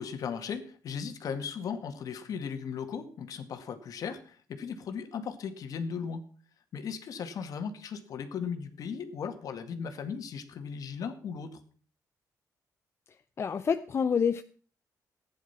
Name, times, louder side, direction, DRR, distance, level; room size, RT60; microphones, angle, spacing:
voice 1, 0.0-6.2 6.7-11.6, left 6 dB, 65° left, 8 dB, 2.0 m, -37 dB
voice 2, 13.4-14.4, left 6 dB, 40° left, 10 dB, 0.7 m, -27 dB
15.0 x 10.0 x 5.8 m, 0.42 s
cardioid pair, 110°, 7 cm